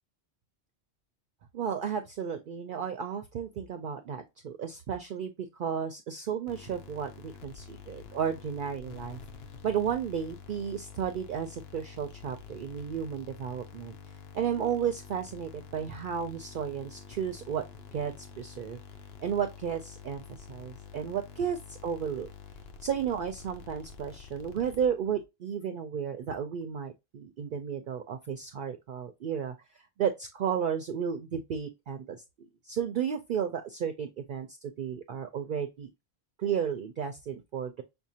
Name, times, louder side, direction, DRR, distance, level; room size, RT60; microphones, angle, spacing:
voice 1, 1.5-5.3 5.6-9.2 9.6-13.9 14.3-17.6 17.9-18.8 19.2-22.3 22.8-35.9 36.4-37.8, right 8 dB, 60° right, 0.6 m, -33 dB
sound 1, 6.5-25.2, left 6 dB, 70° left, 0.9 m, -48 dB
6.1 x 2.1 x 2.7 m
omnidirectional pair, 1.1 m